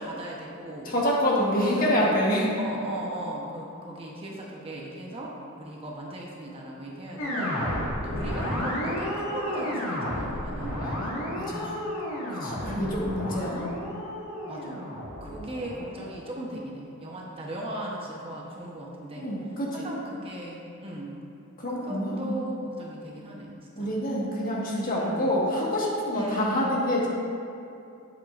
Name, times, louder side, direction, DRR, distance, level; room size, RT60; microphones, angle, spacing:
voice 1, 0.0-0.9 1.6-2.2 2.5-7.5 8.0-10.9 12.6-13.0 14.5-14.9 15.2-19.3 19.7-21.2 21.7-23.9 24.9-25.4 26.1-26.8, right 1 dB, 25° right, -3 dB, 0.9 m, -37 dB
voice 2, 0.8-2.5 10.8-10.9 11.4-11.8 12.3-13.7 19.2-19.9 21.6-22.4 23.8-27.1, equal, 40° left, -4 dB, 1.5 m, -27 dB
sound 1, 7.2-16.5, equal, 80° left, 1.7 m, -32 dB
11.0 x 7.6 x 2.5 m, 2.6 s
head